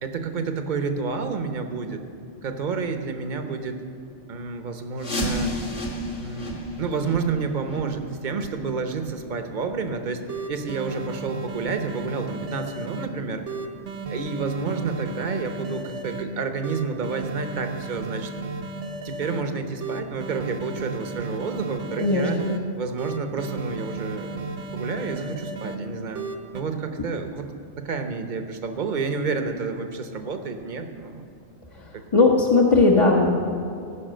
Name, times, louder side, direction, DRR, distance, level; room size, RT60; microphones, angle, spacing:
voice 1, 0.0-2.0 2.4-3.8 4.3-5.5 6.2-10.2 10.5-13.5 14.1-18.3 19.0-22.4 22.8-24.5 24.7-26.2 26.5-31.2 31.9-32.0, right 4 dB, 45° right, 6 dB, 0.9 m, -30 dB
sound 1, 5.0-10.6 10.9-11.0 11.6-11.7 12.3-12.4 12.9-13.0, equal, 65° left, 2.2 m, -33 dB
sound 2, 9.9-10.0 10.3-13.1 13.5-16.2 16.6-19.4 19.8-22.6 23.0-25.8 26.1-26.6, right 3 dB, 70° right, 1.1 m, -34 dB
voice 2, 22.0-22.5 31.8-31.9 32.1-33.3, left 3 dB, 30° left, -2 dB, 0.9 m, -18 dB
15.5 x 5.8 x 7.6 m, 2.5 s
omnidirectional pair, 1.2 m